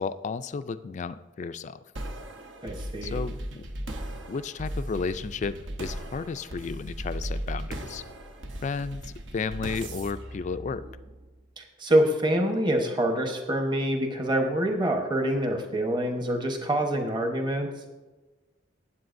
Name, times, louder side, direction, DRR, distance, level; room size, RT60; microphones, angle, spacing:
voice 1, 0.0-1.8 3.0-3.6 4.3-8.0 8.6-10.9, left 5 dB, 40° left, 13 dB, 0.3 m, -33 dB
sound 1, 2.0-11.4, right 1 dB, 75° right, 0.9 m, -37 dB
voice 2, 2.6-3.2 11.6-17.7, right 1 dB, 25° right, 3 dB, 1.0 m, -26 dB
17.0 x 7.8 x 2.6 m, 1.2 s
head